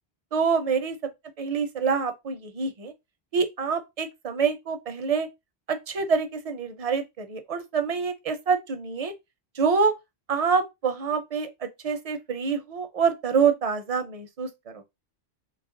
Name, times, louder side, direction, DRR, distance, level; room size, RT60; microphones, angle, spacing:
voice 1, 0.3-1.0 1.4-2.9 3.3-5.3 5.7-9.1 9.6-9.9 10.3-14.5 14.7-14.8, right 5 dB, 45° right, 0.5 m, -26 dB
3.2 x 2.4 x 3.7 m
omnidirectional pair, 1.1 m